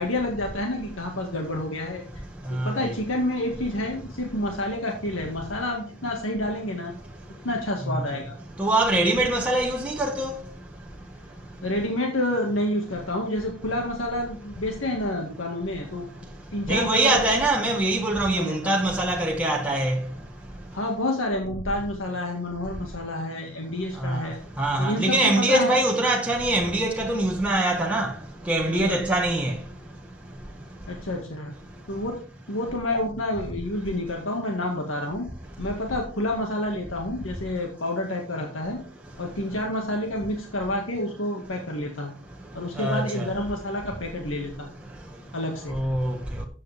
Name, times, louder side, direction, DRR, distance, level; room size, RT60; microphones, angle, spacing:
voice 1, 0.0-2.0 2.5-6.9 7.4-8.3 11.6-17.4 18.4-18.5 20.7-24.4 24.8-25.7 28.8-29.0 30.9-31.6 31.9-32.2 32.5-35.3 35.6-38.8 39.2-42.1 42.5-44.7 45.3-45.8, left 1 dB, 80° left, 1.9 m, -29 dB
voice 2, 2.5-2.9 7.9-8.0 8.6-10.4 16.7-20.0 24.0-24.2 24.6-28.1 28.5-29.6 42.8-43.3 45.7-46.2, right 1 dB, 5° right, 1.4 m, -23 dB
14.0 x 8.4 x 3.5 m
head